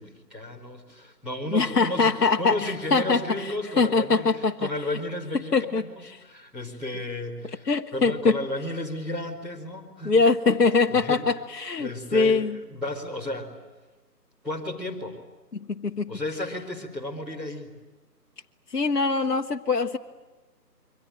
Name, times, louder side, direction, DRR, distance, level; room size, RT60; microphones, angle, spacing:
voice 1, 0.0-5.9 6.2-10.1 10.9-11.2 11.8-13.5 14.4-15.2 16.1-17.7, left 1 dB, ahead, -10 dB, 2.2 m, -33 dB
voice 2, 1.5-4.5 5.5-5.8 7.7-8.4 10.0-12.5 15.7-16.1 18.7-20.0, left 4 dB, 65° left, 3 dB, 1.2 m, -23 dB
27.5 x 24.0 x 8.9 m, 1.2 s
figure-of-eight pair, 155°, 49 cm